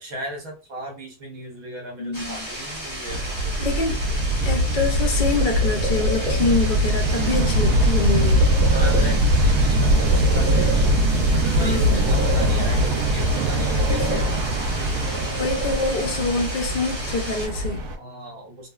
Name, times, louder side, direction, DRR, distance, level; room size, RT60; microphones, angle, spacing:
voice 1, 0.0-3.5 8.7-11.0 11.3-14.7 18.0-18.7, right 1 dB, 65° right, 1.4 m, -36 dB
voice 2, 2.0-2.5 3.6-4.0 4.4-8.4 11.5-12.1 13.9-14.2 15.4-17.8, left 3 dB, 70° left, 0.4 m, -26 dB
sound 1, 2.1-17.5, equal, 10° right, 0.8 m, -34 dB
sound 2, 3.1-18.0, equal, 80° right, 1.1 m, -21 dB
sound 3, 4.8-6.7 8.2-9.6 9.9-11.3 11.6-13.0 13.3-14.7 15.0-16.4, right 1 dB, 40° right, 0.9 m, -31 dB
3.0 x 2.2 x 2.3 m
omnidirectional pair, 1.7 m